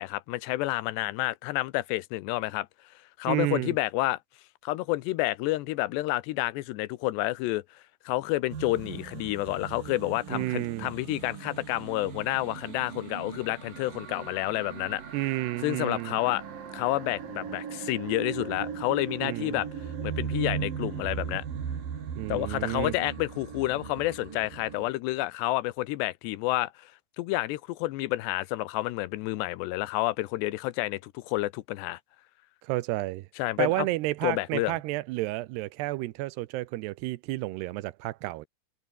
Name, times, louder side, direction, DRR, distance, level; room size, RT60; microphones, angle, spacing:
voice 1, 0.0-2.7 3.2-4.2 4.6-7.6 8.1-15.0 15.6-16.4 16.7-19.7 20.0-21.4 22.3-26.9 27.2-32.0 33.4-33.9 34.2-34.8, left 18 dB, 90° left, 3.1 m, -29 dB
voice 2, 3.3-3.7 10.3-10.9 15.1-16.2 19.2-19.6 22.2-22.9 32.6-33.3 33.6-38.5, right 18 dB, 85° right, 2.8 m, -31 dB
sound 1, 8.5-24.9, right 7 dB, 55° right, 4.8 m, -38 dB
omnidirectional pair, 4.8 m